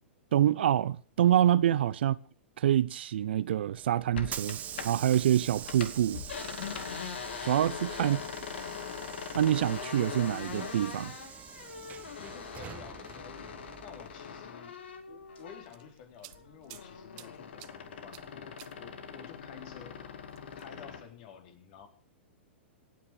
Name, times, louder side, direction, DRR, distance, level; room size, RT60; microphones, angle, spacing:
voice 1, 0.3-2.2 2.6-4.6 4.8-6.2 7.4-8.2 9.3-11.1, right 11 dB, 60° right, 0.7 m, -26 dB
Hiss / Sliding door, 3.6-14.5, right 10 dB, 25° right, 1.0 m, -45 dB
sound 1, 4.1-5.2 5.5-15.9 16.2-21.1, left 7 dB, 65° left, 2.4 m, -42 dB
voice 2, 8.0-8.4 12.2-14.8 15.1-21.9, left 8 dB, 50° left, 4.1 m, -51 dB
sound 2, 15.4-16.9 17.2-17.7 18.1-18.3 18.6-18.7 20.3-20.8, right 21 dB, 45° right, 1.0 m, -50 dB
26.5 x 9.6 x 5.1 m
figure-of-eight pair, 105°, 6 cm